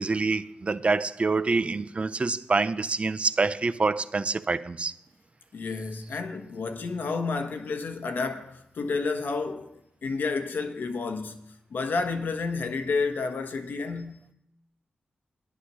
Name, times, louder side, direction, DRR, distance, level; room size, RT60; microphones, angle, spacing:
voice 1, 0.0-4.9, right 3 dB, 35° right, 0.5 m, -26 dB
voice 2, 5.5-11.4 11.7-14.3, left 4 dB, 75° left, 1.2 m, -30 dB
10.0 x 8.8 x 6.2 m
cardioid pair, 70°, 3 cm